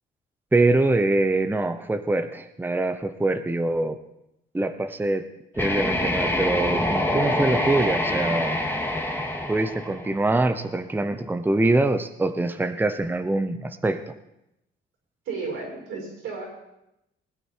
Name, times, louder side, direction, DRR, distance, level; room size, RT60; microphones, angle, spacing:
voice 1, 0.5-4.0 4.5-5.3 5.6-8.6 9.5-14.1, right 2 dB, 10° right, 9 dB, 0.8 m, -24 dB
sound 1, 5.5-10.5, left 1 dB, 10° left, 2.1 m, -26 dB
voice 2, 15.2-16.5, right 4 dB, 90° right, -1 dB, 6.3 m, -33 dB
20.0 x 9.1 x 4.5 m, 0.86 s
cardioid pair, 90°, 20 cm